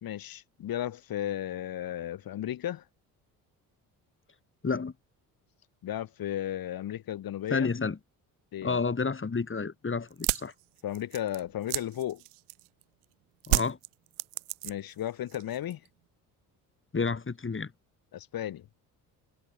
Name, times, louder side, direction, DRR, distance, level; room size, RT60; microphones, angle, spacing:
voice 1, 0.0-2.8 5.8-7.7 8.5-8.8 10.8-12.2 14.6-15.8 18.1-18.7, left 12 dB, 50° left, 2.3 m, -34 dB
voice 2, 4.6-4.9 7.5-8.0 8.6-10.5 13.5-13.8 16.9-17.7, left 4 dB, 25° left, 4.4 m, -30 dB
sound 1, 10.1-12.8 13.4-15.0 15.3-15.9, right 27 dB, 75° right, 1.0 m, -31 dB
hypercardioid pair, 55°, 44 cm